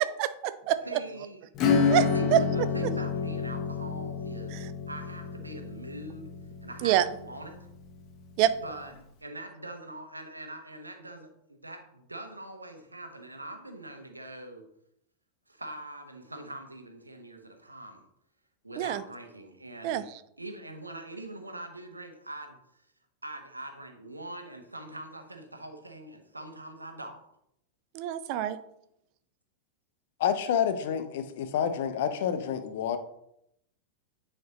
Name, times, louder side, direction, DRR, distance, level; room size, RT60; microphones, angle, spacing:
voice 1, 0.0-1.0 1.9-2.1 2.3-2.4 4.5-4.7 6.8-7.0 8.4-8.5 18.8-19.0 19.8-20.0 27.9-28.6, right 12 dB, 45° right, 0.4 m, -26 dB
voice 2, 0.8-1.5 1.9-4.6 4.9-6.3 6.6-7.6 8.5-8.9 9.2-14.6 15.5-18.0 18.6-20.1 20.4-22.6 23.2-27.2, right 1 dB, 80° right, 0.9 m, -43 dB
Acoustic guitar / Strum, 1.6-7.8, left 5 dB, 35° left, 1.0 m, -29 dB
voice 3, 30.2-33.0, left 8 dB, 55° left, 0.6 m, -28 dB
9.1 x 4.4 x 2.9 m
figure-of-eight pair, 90°, 0 cm